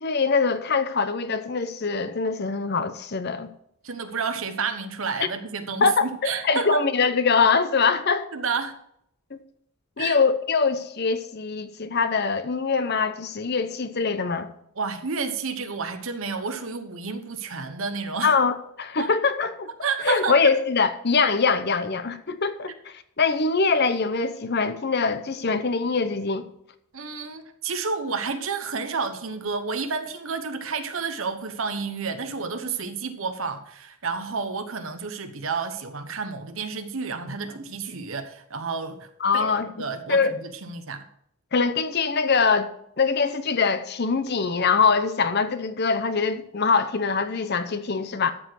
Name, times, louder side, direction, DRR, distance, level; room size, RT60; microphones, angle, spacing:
voice 1, 0.0-3.5 5.8-8.3 9.3-9.4 10.0-14.5 18.2-19.7 20.0-26.5 39.2-39.7 40.1-40.3 41.5-42.7 43.0-48.3, left 5 dB, 45° left, 0.7 m, -23 dB
voice 2, 3.8-6.8 8.3-8.7 10.0-10.2 14.8-18.4 19.0-19.1 19.8-20.5 26.9-41.0, right 5 dB, 65° right, 1.0 m, -30 dB
13.0 x 4.9 x 6.1 m
head